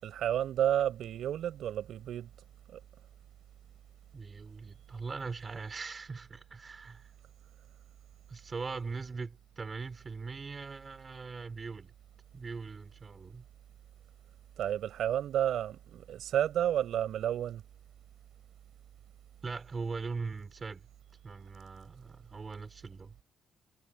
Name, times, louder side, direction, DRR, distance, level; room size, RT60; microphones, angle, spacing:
voice 1, 0.0-2.3 2.7-2.8 14.6-17.6, right 11 dB, 60° right, 5.6 m, -31 dB
voice 2, 4.1-7.1 8.3-11.9 12.3-13.5 19.4-20.8 21.2-23.2, right 4 dB, 25° right, 3.9 m, -41 dB
cardioid pair, 165°, 0 cm